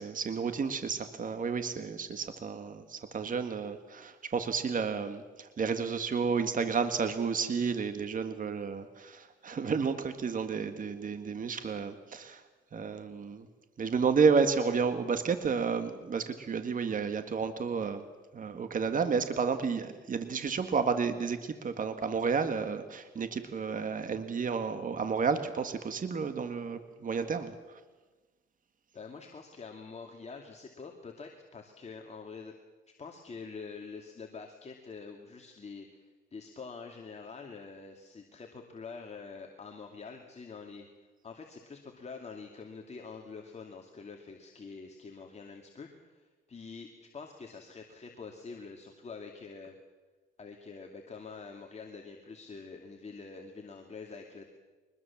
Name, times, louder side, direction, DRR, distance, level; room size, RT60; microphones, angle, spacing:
voice 1, 0.0-12.4 12.7-13.5 13.8-18.0 18.3-27.8, right 5 dB, 45° right, 9 dB, 1.7 m, -31 dB
voice 2, 28.9-32.6 33.0-40.9 41.2-49.8 50.4-54.5, left 4 dB, 35° left, 2 dB, 2.5 m, -46 dB
23.5 x 21.0 x 7.3 m, 1.3 s
cardioid pair, 90°, 20 cm